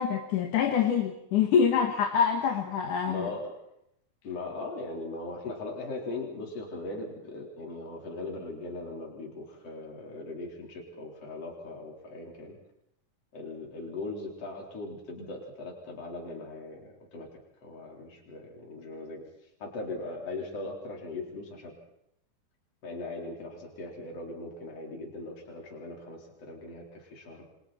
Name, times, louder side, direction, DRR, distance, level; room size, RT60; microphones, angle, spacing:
voice 1, 0.0-3.3, left 7 dB, 65° left, 2 dB, 3.0 m, -25 dB
voice 2, 3.0-3.5 4.2-12.6 13.3-17.3 17.6-19.2 19.6-21.7 22.8-27.5, left 2 dB, 45° left, -1 dB, 5.3 m, -39 dB
29.0 x 25.5 x 4.4 m, 0.77 s
omnidirectional pair, 4.0 m